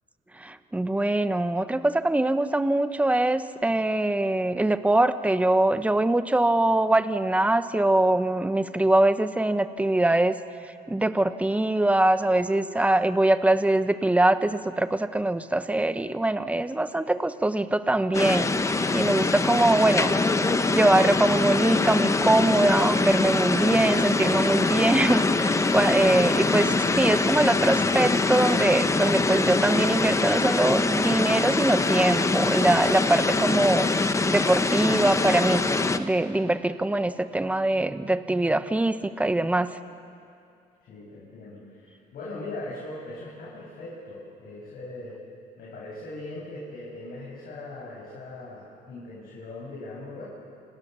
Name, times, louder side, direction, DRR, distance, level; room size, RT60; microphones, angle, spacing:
voice 1, 0.4-10.4 10.9-20.1 20.7-33.9 34.3-35.6 36.0-39.8, right 1 dB, 10° right, 11 dB, 1.1 m, -23 dB
sound 1, 18.1-36.0, left 3 dB, 15° left, 1.1 m, -24 dB
voice 2, 18.8-19.3 40.9-45.2 45.6-50.2, left 2 dB, 60° left, -5 dB, 7.7 m, -40 dB
29.0 x 27.0 x 7.0 m, 2.5 s
cardioid pair, 110°, 17 cm